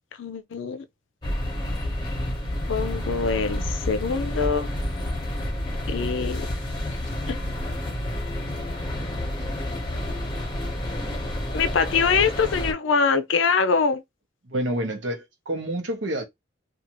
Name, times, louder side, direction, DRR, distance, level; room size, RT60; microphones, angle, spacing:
voice 1, 0.2-0.8 2.7-4.7 5.9-6.5 7.3-7.4 11.5-14.0, left 5 dB, 75° left, 0.5 m, -24 dB
sound 1, 1.2-12.7, left 1 dB, 25° left, 0.9 m, -29 dB
voice 2, 10.7-11.3 14.5-16.2, right 1 dB, 70° right, 0.8 m, -29 dB
2.6 x 2.3 x 2.9 m
head